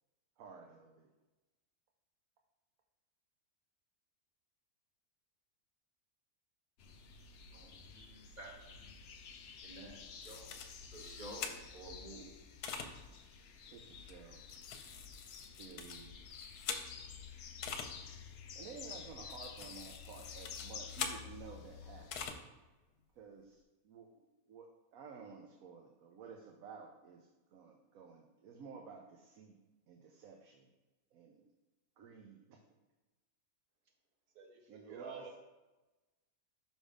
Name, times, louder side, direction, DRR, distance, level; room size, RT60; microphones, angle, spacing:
voice 1, 0.4-1.1 13.7-14.4 15.6-16.1 18.5-22.4 23.1-29.6 29.9-30.7 31.1-31.5 32.0-32.6 34.7-35.2, right 5 dB, 70° right, 2 dB, 1.0 m, -53 dB
sound 1, 6.8-22.3, left 6 dB, 65° left, 0.6 m, -51 dB
voice 2, 7.9-8.5 9.6-10.5 10.9-12.2, right 2 dB, 30° right, -2 dB, 1.5 m, -51 dB
sound 2, 10.2-11.9 12.6-12.9 14.1-17.1 17.6-17.9 18.9-21.2 22.1-22.4, left 6 dB, 80° left, 1.2 m, -44 dB
voice 3, 34.3-35.4, right 4 dB, 85° right, 2 dB, 1.5 m, -50 dB
6.2 x 3.4 x 5.0 m, 1.1 s
omnidirectional pair, 1.6 m